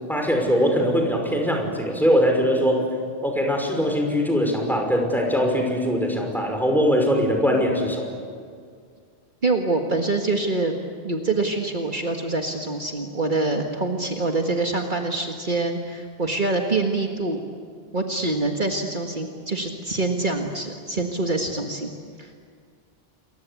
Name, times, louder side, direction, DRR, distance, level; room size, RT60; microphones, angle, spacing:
voice 1, 0.1-2.9 3.2-8.0, equal, ahead, 2 dB, 5.5 m, -21 dB
voice 2, 9.4-10.7 11.0-17.4 17.9-21.9 22.2-22.4, right 2 dB, 50° right, 2 dB, 1.9 m, -25 dB
28.5 x 23.5 x 8.4 m, 2.1 s
omnidirectional pair, 1.1 m